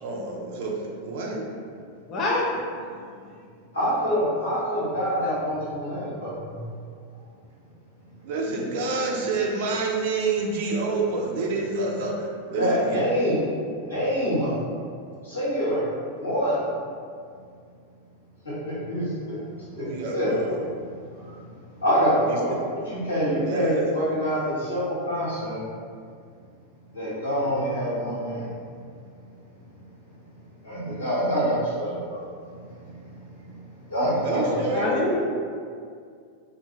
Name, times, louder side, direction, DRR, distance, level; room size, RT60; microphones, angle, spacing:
voice 1, 0.0-1.5 8.2-13.0 19.8-20.5 22.3-22.6 23.4-23.8 34.2-35.1, right 3 dB, 50° right, -1 dB, 0.4 m, -28 dB
voice 2, 2.1-3.1 34.7-35.2, left 2 dB, 30° left, -4 dB, 0.4 m, -26 dB
voice 3, 3.7-6.6 12.5-13.4 13.8-14.6 15.2-15.9 16.2-16.7 18.4-19.4 19.7-20.7 21.1-22.6 22.9-25.6 26.9-28.5 30.6-33.5 33.9-34.9, equal, 75° left, -10 dB, 1.2 m, -26 dB
2.7 x 2.2 x 2.9 m, 2.2 s
figure-of-eight pair, 90°, 0 cm